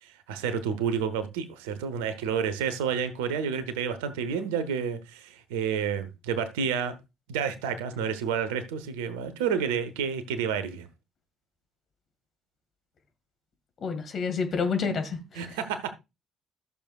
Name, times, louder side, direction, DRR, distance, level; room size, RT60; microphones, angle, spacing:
voice 1, 0.0-6.9 7.3-10.9 15.4-15.9, right 7 dB, 70° right, 1.0 m, -30 dB
voice 2, 13.8-15.6, left 5 dB, 45° left, 1.9 m, -29 dB
14.0 x 6.9 x 2.4 m
figure-of-eight pair, 50°, 0 cm